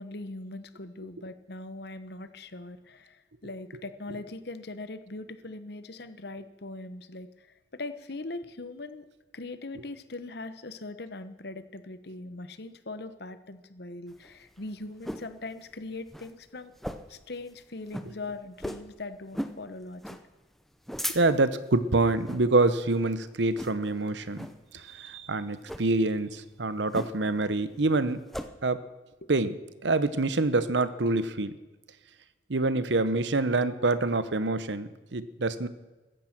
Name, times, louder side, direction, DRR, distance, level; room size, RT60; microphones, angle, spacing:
voice 1, 0.0-9.0 9.3-16.7 17.1-20.2 29.2-29.3, left 2 dB, 60° left, 12 dB, 1.1 m, -41 dB
sound 1, 14.1-15.3 15.7-15.8 16.1-16.3 16.8-17.2 17.5-17.6 17.9-18.1 18.6-18.9 19.3-19.6 20.0-20.2 20.7-21.5 22.2-22.5 22.9-23.1 23.5-24.0 24.4-24.6 25.6-25.9 26.9-27.4 27.7-28.5, equal, ahead, 0.7 m, -37 dB
voice 2, 21.1-24.5 24.7-28.2 28.6-28.8 29.3-29.5 29.8-31.5 32.5-35.7, right 2 dB, 70° right, 14 dB, 0.9 m, -26 dB
15.5 x 13.5 x 6.0 m, 1.2 s
head